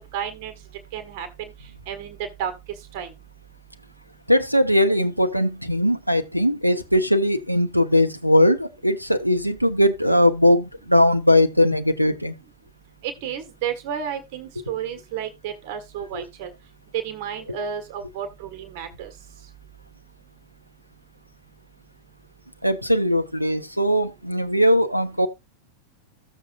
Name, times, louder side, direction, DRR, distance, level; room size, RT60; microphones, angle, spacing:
voice 1, 0.1-0.5 0.9-1.5 1.9-2.5 2.9-3.1 13.0-16.5 16.9-19.1, right 8 dB, 50° right, 1.6 m, -31 dB
voice 2, 4.3-12.3 16.1-16.2 22.6-25.3, left 1 dB, 90° right, 1.1 m, -20 dB
14.5 x 7.5 x 2.5 m
figure-of-eight pair, 90°, 0 cm